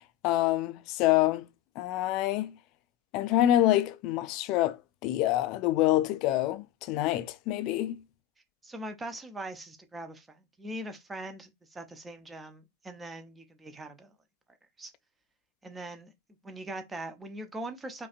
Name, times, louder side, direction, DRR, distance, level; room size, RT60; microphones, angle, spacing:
voice 1, 0.2-1.5 1.8-2.5 3.1-8.0, left 14 dB, 40° left, 0.4 m, -26 dB
voice 2, 8.6-14.1 14.8-14.9 15.6-16.1 16.4-18.1, right 1 dB, 15° right, 0.7 m, -41 dB
4.9 x 2.4 x 2.5 m
figure-of-eight pair, 90°, 0 cm